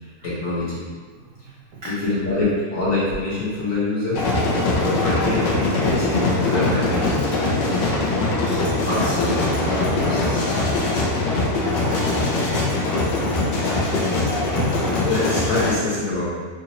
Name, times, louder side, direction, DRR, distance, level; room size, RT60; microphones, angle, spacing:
voice 1, 0.2-0.8 1.8-4.2 4.7-7.2 8.9-9.5 9.9-10.4 15.0-16.3, left 2 dB, 50° left, -10 dB, 1.4 m, -25 dB
sound 1, 4.1-15.7, left 2 dB, 80° left, 1.3 m, -22 dB
voice 2, 5.8-6.2 6.6-6.7 7.0-7.1 11.5-12.0 12.9-13.1 14.0-15.0, right 4 dB, 80° right, -5 dB, 0.7 m, -37 dB
4.0 x 2.5 x 2.7 m, 1.5 s
omnidirectional pair, 1.9 m